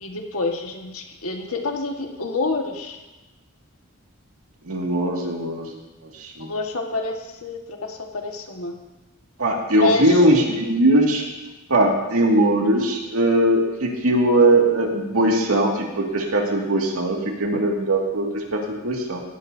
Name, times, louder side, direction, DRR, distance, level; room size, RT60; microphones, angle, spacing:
voice 1, 0.0-3.0 6.4-8.7 9.8-10.2, left 3 dB, 75° left, 1 dB, 1.6 m, -27 dB
voice 2, 4.6-5.8 6.2-6.5 9.4-11.2 11.7-19.2, right 1 dB, 85° right, 0 dB, 2.1 m, -20 dB
17.0 x 12.0 x 2.7 m, 1.1 s
head